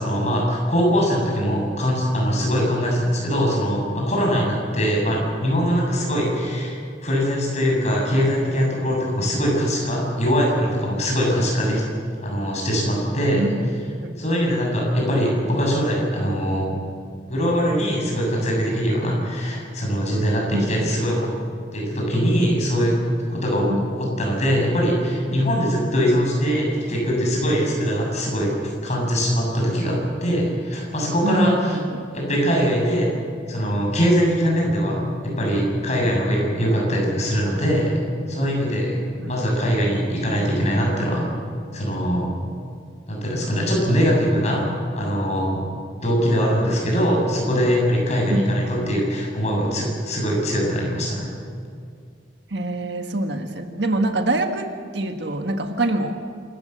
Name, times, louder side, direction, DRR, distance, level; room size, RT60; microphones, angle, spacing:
voice 1, 0.0-11.8 12.2-13.4 14.2-16.7 17.3-21.2 21.7-23.0 23.3-23.7 24.0-28.5 28.8-30.0 30.2-31.8 32.1-33.1 33.5-38.0 38.3-39.0 39.3-41.2 41.7-42.3 43.1-44.7 45.0-45.6 46.0-51.3, equal, 40° left, -1 dB, 7.6 m, -22 dB
voice 2, 20.5-20.9 23.7-23.8 31.2-32.1 39.2-39.4 48.3-49.0 52.5-56.2, right 1 dB, 65° right, 5 dB, 1.6 m, -25 dB
27.5 x 14.5 x 8.1 m, 2.2 s
head